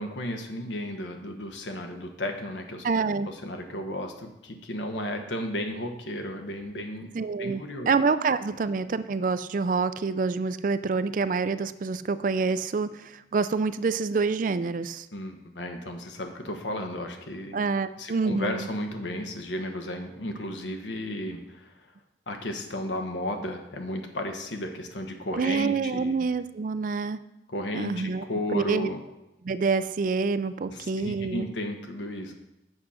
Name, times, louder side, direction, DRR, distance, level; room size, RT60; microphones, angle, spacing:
voice 1, 0.0-2.8 3.3-7.1 7.4-7.9 15.1-17.6 18.0-21.9 22.3-26.2 27.5-29.0 30.7-32.3, left 1 dB, 80° left, 5 dB, 1.2 m, -34 dB
voice 2, 2.8-3.3 7.1-15.1 17.5-18.7 25.4-27.2 27.7-28.2 28.5-28.9 29.4-31.5, right 4 dB, 45° right, 14 dB, 0.4 m, -27 dB
8.0 x 6.4 x 5.7 m, 0.92 s
head